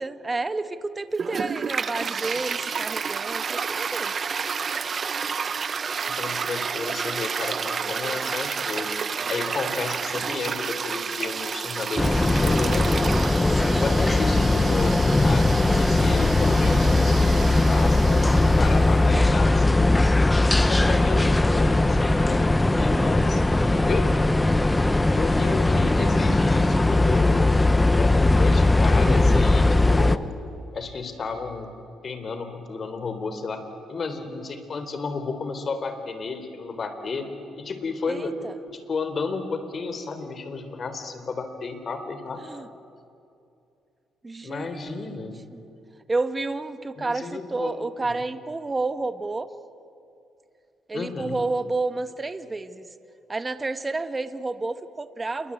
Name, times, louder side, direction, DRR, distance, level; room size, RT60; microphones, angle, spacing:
voice 1, 0.0-4.1 13.5-13.9 20.8-21.4 22.9-23.3 38.1-38.6 42.4-42.7 44.2-45.1 45.5-45.6 46.1-49.5 50.9-52.9 53.3-55.5, right 3 dB, 25° right, 11 dB, 1.4 m, -30 dB
Toilet flush, 1.1-19.1, right 6 dB, 45° right, 0.8 m, -31 dB
voice 2, 6.1-9.0 9.3-12.9 13.8-19.9 20.5-22.5 22.8-24.1 25.1-27.6 27.9-30.2 30.7-31.7 32.0-33.6 33.9-37.3 37.6-38.3 38.7-42.7 44.4-45.4 47.0-48.2 50.9-51.4, left 4 dB, 45° left, 9 dB, 3.7 m, -32 dB
sound 1, 12.0-30.2, left 2 dB, 15° left, 1.0 m, -19 dB
28.0 x 22.5 x 8.7 m, 2.6 s
cardioid pair, 90°, 0 cm